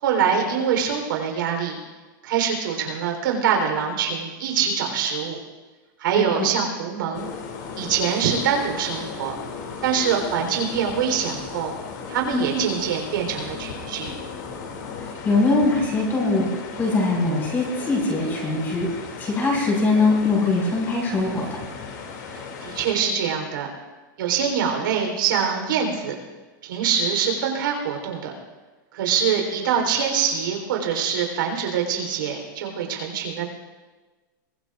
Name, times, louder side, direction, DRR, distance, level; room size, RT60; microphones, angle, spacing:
voice 1, 0.0-1.8 2.2-5.4 6.0-7.3 7.8-9.3 9.8-11.7 12.1-14.1 22.3-23.7 24.2-26.1 26.6-28.3 28.9-33.5, right 7 dB, 75° right, 2 dB, 3.8 m, -24 dB
voice 2, 6.2-6.5 12.3-12.6 15.0-18.9 19.2-21.6, left 3 dB, 20° left, -3 dB, 5.4 m, -22 dB
sound 1, 7.1-22.9, left 5 dB, 55° left, 2.7 m, -36 dB
23.5 x 17.5 x 2.5 m, 1.3 s
supercardioid pair, 160°, 11 cm